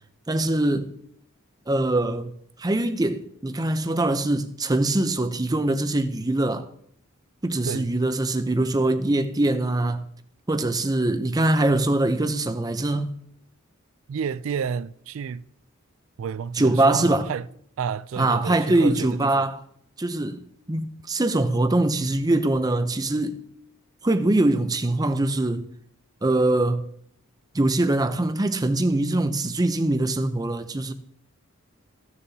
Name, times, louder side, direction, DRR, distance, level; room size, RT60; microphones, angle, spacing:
voice 1, 0.3-0.9 1.7-2.3 2.6-6.7 7.4-10.0 10.5-13.1 16.6-17.3 18.2-19.6 20.0-23.4 24.0-25.7 26.2-26.8 27.5-30.9, right 2 dB, 20° right, 0.6 m, -23 dB
voice 2, 14.1-15.5 16.2-17.5 17.8-19.5, right 6 dB, 65° right, 0.3 m, -30 dB
15.5 x 6.9 x 2.8 m
head